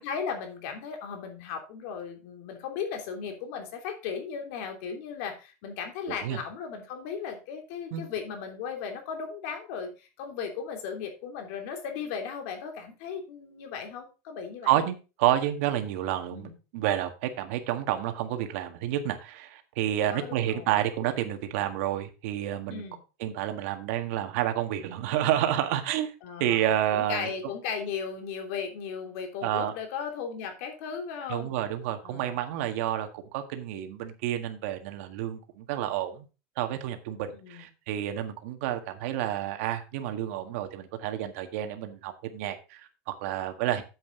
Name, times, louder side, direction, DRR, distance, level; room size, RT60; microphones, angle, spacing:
voice 1, 0.0-14.9 16.3-16.6 20.0-20.8 22.7-23.0 26.2-31.6 32.0-32.4 37.3-37.7 43.7-43.8, left 6 dB, 60° left, 4 dB, 3.0 m, -36 dB
voice 2, 14.6-22.8 23.2-26.1 26.4-27.3 29.4-29.7 31.3-36.3 36.6-43.8, right 12 dB, 65° right, 7 dB, 1.7 m, -29 dB
9.3 x 7.9 x 3.8 m, 0.30 s
supercardioid pair, 170°, 8 cm